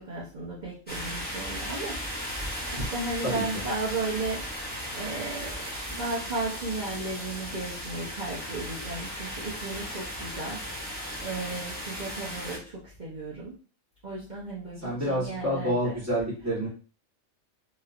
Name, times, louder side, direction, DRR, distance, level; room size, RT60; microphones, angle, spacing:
voice 1, 0.0-4.4 4.9-10.6 11.2-13.5 14.0-16.0, right 3 dB, 40° right, -7 dB, 0.9 m, -35 dB
sound 1, 0.9-12.6, equal, 5° left, 1.5 m, -36 dB
voice 2, 3.2-3.6 14.8-16.7, equal, 10° right, -6 dB, 1.3 m, -28 dB
3.1 x 3.0 x 2.5 m, 0.38 s
omnidirectional pair, 1.4 m